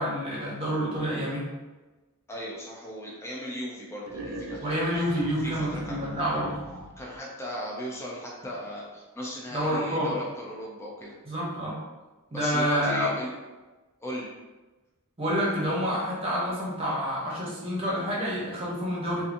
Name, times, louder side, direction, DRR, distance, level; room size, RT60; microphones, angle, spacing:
voice 1, 0.0-1.5 4.6-6.6 9.5-10.1 11.3-11.8 12.3-13.1 15.2-19.2, equal, 25° right, -5 dB, 0.7 m, -28 dB
voice 2, 2.3-4.9 5.4-6.3 7.0-11.2 12.3-13.3 14.0-14.3, equal, 10° left, -4 dB, 0.4 m, -37 dB
sound 1, 4.1-7.1, right 1 dB, 80° right, 0.5 m, -40 dB
2.6 x 2.5 x 2.5 m, 1.2 s
head